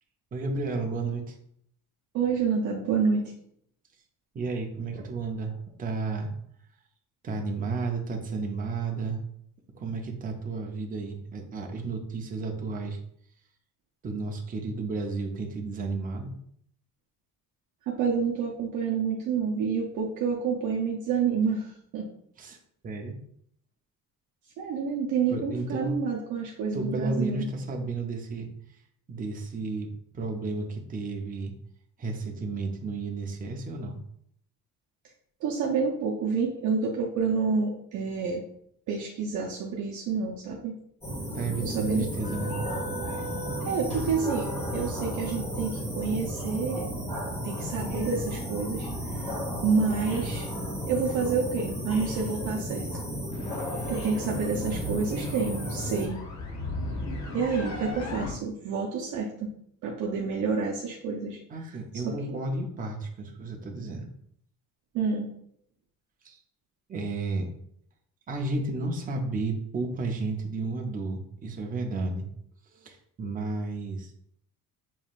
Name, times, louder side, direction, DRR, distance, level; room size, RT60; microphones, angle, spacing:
voice 1, 0.3-1.4 4.3-6.3 7.2-9.2 9.7-13.0 14.0-16.3 22.4-22.6 22.8-23.2 25.3-25.9 26.7-28.5 29.1-29.9 30.1-31.5 32.0-34.0 41.3-42.5 61.5-64.1 66.2-66.4 66.9-67.5 68.3-72.3 72.7-74.1, right 3 dB, 25° right, 2 dB, 0.6 m, -32 dB
voice 2, 2.1-3.3 17.9-22.1 24.6-27.5 35.4-38.4 38.9-40.7 41.6-42.0 43.6-46.9 47.4-49.3 49.6-50.5 50.9-52.9 53.9-56.2 57.3-59.5 59.8-61.4 62.0-62.4 64.9-65.3, right 5 dB, 60° right, -2 dB, 0.7 m, -28 dB
sound 1, 41.0-56.1, equal, 20° left, 1.8 m, -33 dB
sound 2, 53.3-58.3, left 2 dB, 50° left, 0.8 m, -37 dB
6.9 x 3.1 x 2.4 m, 0.68 s
cardioid pair, 175°, 34 cm